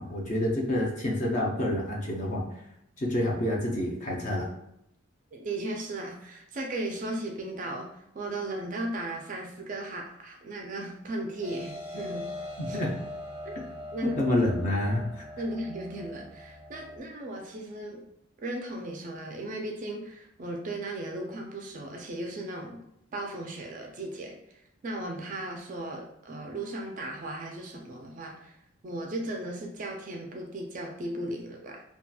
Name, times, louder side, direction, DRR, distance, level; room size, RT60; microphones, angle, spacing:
voice 1, 0.0-2.4 3.0-4.5 12.6-12.9 14.0-15.2, left 1 dB, 35° left, -1 dB, 0.5 m, -28 dB
voice 2, 5.3-12.3 12.7-12.8 13.4-13.5 13.9-14.2 15.4-18.1 18.4-22.8 23.1-28.5 28.8-31.8, right 1 dB, 35° right, 1 dB, 0.3 m, -36 dB
sound 1, 11.4-17.0, left 1 dB, 80° left, 1.1 m, -41 dB
2.7 x 2.3 x 2.2 m, 0.80 s
head